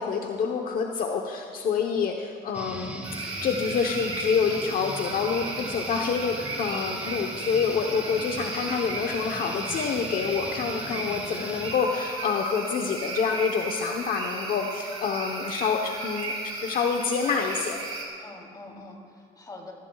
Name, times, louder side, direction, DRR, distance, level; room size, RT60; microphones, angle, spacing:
voice 1, 0.0-3.0 3.4-17.8, left 6 dB, 60° left, 2 dB, 1.0 m, -27 dB
sound 1, 2.5-11.7, right 1 dB, 10° right, 2.2 m, -39 dB
sound 2, 3.0-18.1, right 3 dB, 35° right, 4.1 m, -36 dB
voice 2, 18.2-19.7, left 2 dB, 25° left, -1 dB, 3.2 m, -45 dB
23.0 x 14.5 x 2.4 m, 2.3 s
cardioid pair, 110°, 17 cm